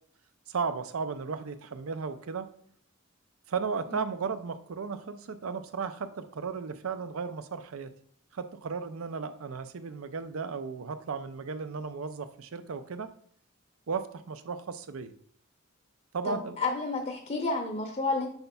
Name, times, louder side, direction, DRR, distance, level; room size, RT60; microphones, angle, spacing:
voice 1, 0.5-2.5 3.5-7.9 8.3-13.1 13.9-15.1 16.1-16.6, right 5 dB, 75° right, 11 dB, 0.5 m, -35 dB
voice 2, 16.3-18.3, left 3 dB, 35° left, 3 dB, 0.7 m, -31 dB
7.9 x 5.4 x 2.3 m, 0.63 s
head